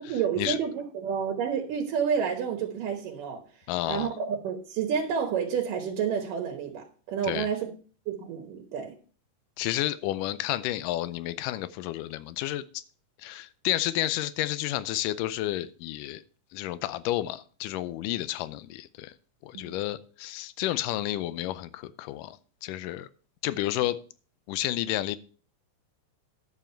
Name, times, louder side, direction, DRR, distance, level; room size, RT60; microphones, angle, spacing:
voice 1, 0.1-3.4 3.9-7.7 8.1-8.9 19.5-19.7, right 7 dB, 85° right, 2.9 m, -29 dB
voice 2, 3.7-4.1 7.2-7.5 9.6-12.8 13.2-16.2 16.5-19.1 19.4-22.4 22.6-23.1 23.4-24.0 24.5-25.2, left 14 dB, 85° left, 2.2 m, -31 dB
11.0 x 7.1 x 4.4 m
omnidirectional pair, 3.7 m